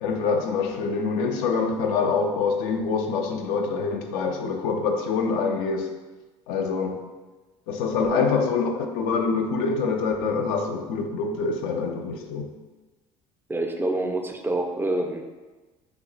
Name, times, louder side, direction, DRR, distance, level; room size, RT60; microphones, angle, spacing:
voice 1, 0.0-5.9 6.5-7.0 7.7-12.5, left 4 dB, 75° left, 4 dB, 0.4 m, -25 dB
voice 2, 13.5-15.2, right 2 dB, 15° right, 4 dB, 0.3 m, -27 dB
2.8 x 2.1 x 3.9 m, 1.2 s
hypercardioid pair, 75°, 16 cm